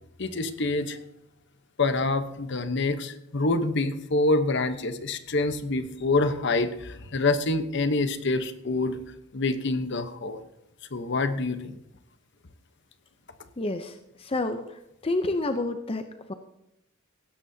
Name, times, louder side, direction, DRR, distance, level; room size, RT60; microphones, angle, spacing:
voice 1, 0.2-1.0 1.8-9.0 9.3-10.4 10.9-11.8, left 2 dB, 55° left, 10 dB, 1.0 m, -26 dB
voice 2, 13.6-13.9 14.2-14.6 15.0-16.0 16.3-16.4, left 2 dB, 25° left, 8 dB, 0.6 m, -28 dB
16.5 x 12.5 x 2.8 m, 0.85 s
head